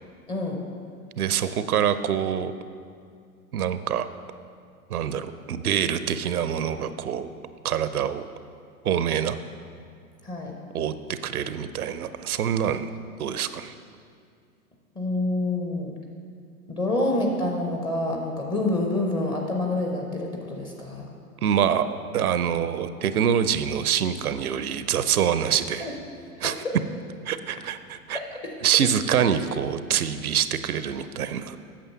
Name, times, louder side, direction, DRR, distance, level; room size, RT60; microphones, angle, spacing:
voice 1, 0.3-0.6 10.2-10.6 15.0-15.9 16.7-21.1 25.8-25.9 28.1-28.3 29.1-29.3, left 2 dB, 10° left, 1 dB, 0.4 m, -27 dB
voice 2, 1.2-2.5 3.5-4.1 4.9-7.3 7.6-8.2 8.8-9.4 10.7-12.9 13.2-13.7 21.4-21.9 22.1-25.9 26.4-26.5 27.2-28.2 28.6-31.6, right 8 dB, 70° right, 12 dB, 0.6 m, -25 dB
8.8 x 6.7 x 5.6 m, 2.3 s
figure-of-eight pair, 105°, 46 cm